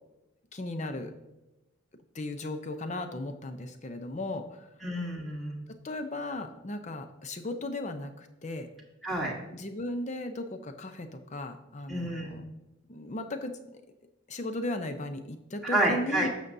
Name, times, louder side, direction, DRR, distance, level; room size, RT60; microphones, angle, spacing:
voice 1, 0.5-1.1 2.1-4.7 5.8-8.7 9.5-12.5 12.9-13.8 14.3-16.3, left 2 dB, 35° left, 8 dB, 0.6 m, -36 dB
voice 2, 4.8-5.6 9.0-9.3 11.9-12.3 15.6-16.3, right 1 dB, ahead, -4 dB, 1.2 m, -29 dB
11.0 x 6.6 x 2.7 m, 0.98 s
head